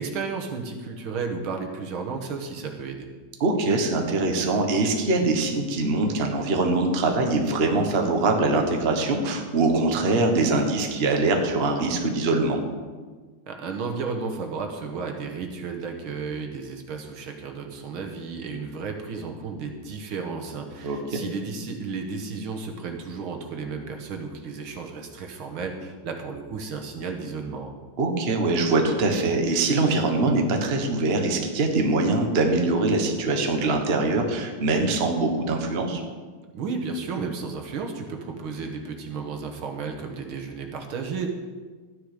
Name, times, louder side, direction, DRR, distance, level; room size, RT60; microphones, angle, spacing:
voice 1, 0.0-3.1 13.5-27.7 36.5-41.3, right 4 dB, 70° right, 3 dB, 2.1 m, -33 dB
voice 2, 3.4-12.6 20.8-21.2 28.0-36.0, right 2 dB, 35° right, 3 dB, 1.3 m, -23 dB
13.5 x 9.7 x 5.0 m, 1.4 s
omnidirectional pair, 2.4 m